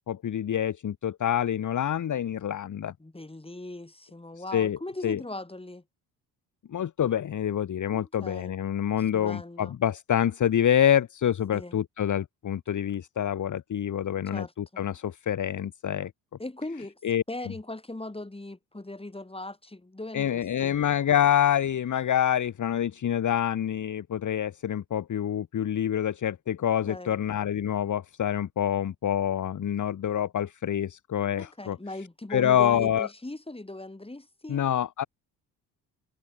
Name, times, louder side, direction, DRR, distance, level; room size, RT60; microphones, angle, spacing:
voice 1, 0.1-2.9 4.5-4.8 5.0-5.2 6.7-16.1 17.0-17.2 20.1-31.8 32.3-33.1 34.5-35.1, left 10 dB, 35° left, 1.5 m, -26 dB
voice 2, 3.0-5.8 7.9-8.5 9.1-9.8 11.5-11.8 14.3-14.8 16.4-17.0 17.3-20.8 26.8-27.2 31.4-34.7, left 2 dB, 10° left, 7.5 m, -39 dB
hypercardioid pair, 50°, 49 cm